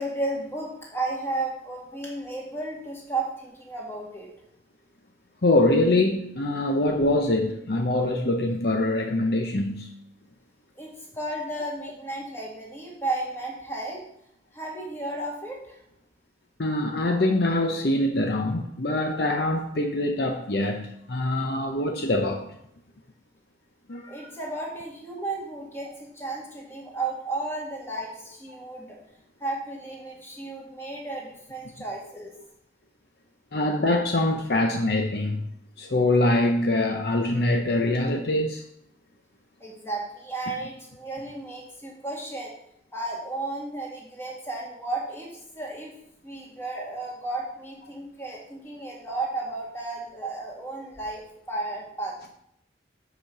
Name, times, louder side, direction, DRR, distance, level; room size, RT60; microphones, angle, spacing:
voice 1, 0.0-4.3 10.8-14.0 14.5-15.8 23.9-29.0 29.4-32.3 39.6-42.5 42.9-45.9 46.2-52.1, right 2 dB, 15° left, 2.1 m, -33 dB
voice 2, 5.4-9.9 16.6-22.4 23.9-24.0 28.5-28.6 33.5-35.4 35.8-38.6, left 1 dB, 55° left, 0.8 m, -24 dB
8.1 x 5.1 x 6.0 m
head